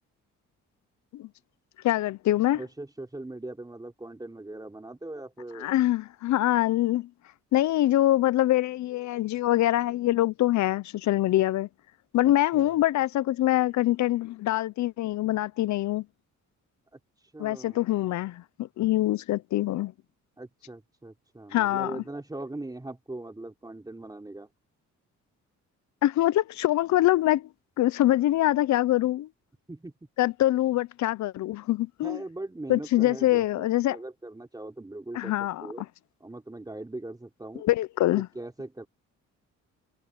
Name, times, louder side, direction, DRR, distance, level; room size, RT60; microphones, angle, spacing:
voice 1, 1.8-2.6 5.6-7.1 7.5-11.7 12.1-16.0 17.4-19.9 21.5-21.9 26.0-27.5 27.8-29.3 30.2-32.2 32.7-34.0 35.1-35.7 37.6-38.3, left 14 dB, 70° left, 0.6 m, -24 dB
voice 2, 2.5-5.7 12.5-12.8 17.2-17.8 20.4-24.5 29.7-29.9 32.0-35.3 35.6-35.8 36.2-37.6 38.3-38.9, right 2 dB, 15° right, 3.2 m, -40 dB
cardioid pair, 90°, 30 cm